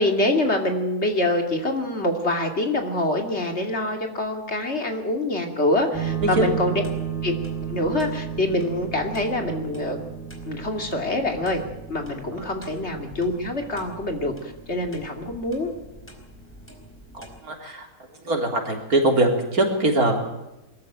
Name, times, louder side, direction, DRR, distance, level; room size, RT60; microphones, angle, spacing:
voice 1, 0.0-6.8 7.2-7.3 7.7-10.0 10.4-11.6 11.9-15.7, left 1 dB, 45° left, 4 dB, 2.9 m, -25 dB
sound 1, 5.9-17.4, right 7 dB, 10° left, 4.5 m, -34 dB
voice 2, 17.1-17.9 18.2-20.2, right 2 dB, 75° right, 2 dB, 4.1 m, -22 dB
22.5 x 14.5 x 9.1 m, 0.97 s
omnidirectional pair, 1.6 m